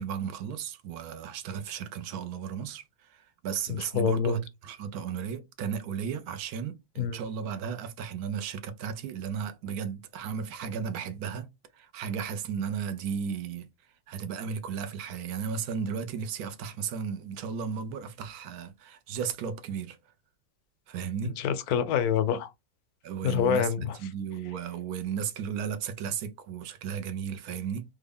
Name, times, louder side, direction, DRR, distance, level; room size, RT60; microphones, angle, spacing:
voice 1, 0.0-11.5 11.7-13.7 14.1-20.0 20.9-21.3 23.0-27.8, right 7 dB, 85° right, 1.1 m, -34 dB
voice 2, 3.7-4.4 7.0-7.2 21.4-22.5 23.2-24.0, left 8 dB, 90° left, 1.1 m, -26 dB
3.4 x 2.2 x 3.4 m
omnidirectional pair, 1.6 m